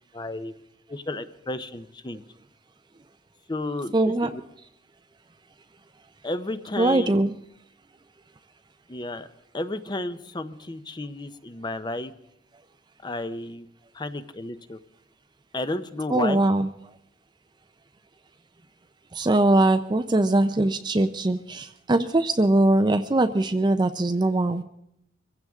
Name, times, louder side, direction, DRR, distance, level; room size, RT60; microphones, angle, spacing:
voice 1, 0.1-0.5 0.9-2.2 3.5-4.4 6.2-7.2 8.9-9.3 9.5-12.1 13.0-13.7 13.9-14.8 15.5-16.4, left 2 dB, 25° left, 12 dB, 0.7 m, -32 dB
voice 2, 3.9-4.3 6.8-7.3 16.1-16.7 19.1-24.6, right 2 dB, 25° right, 8 dB, 0.5 m, -21 dB
23.5 x 15.5 x 3.6 m, 0.76 s
head